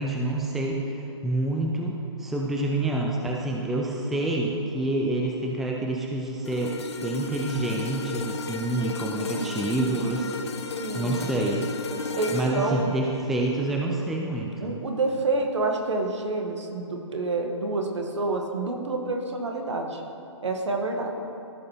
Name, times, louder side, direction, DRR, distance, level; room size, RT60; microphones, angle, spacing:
voice 1, 0.0-10.3 10.9-11.7 12.3-14.8, right 2 dB, ahead, -1 dB, 0.3 m, -27 dB
sound 1, 6.5-14.8 15.2-15.5, left 4 dB, 60° left, 0.7 m, -35 dB
voice 2, 8.9-9.7 10.8-11.3 12.1-12.9 14.6-20.0 20.4-21.1, right 3 dB, 65° right, 2 dB, 1.3 m, -28 dB
15.0 x 5.2 x 2.9 m, 2.6 s
figure-of-eight pair, 135°, 16 cm